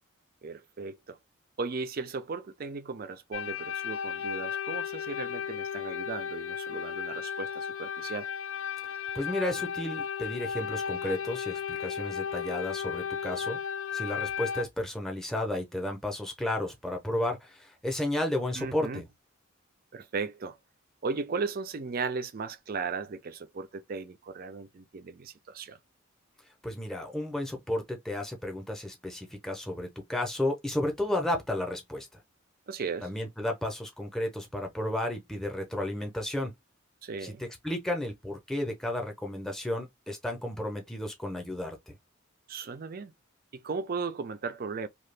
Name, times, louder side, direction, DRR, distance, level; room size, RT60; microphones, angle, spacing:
voice 1, 0.4-1.2 1.6-8.3 18.6-19.0 19.9-20.6 21.0-25.8 32.7-33.1 37.0-37.4 42.5-43.1 43.5-44.9, right 4 dB, 45° right, 0.4 m, -36 dB
sound 1, 3.3-14.6, left 7 dB, 70° left, 0.4 m, -34 dB
voice 2, 9.1-13.6 13.9-19.1 26.6-32.1 33.0-36.5 37.2-42.0, left 1 dB, ahead, 0.7 m, -33 dB
2.8 x 2.3 x 3.3 m
head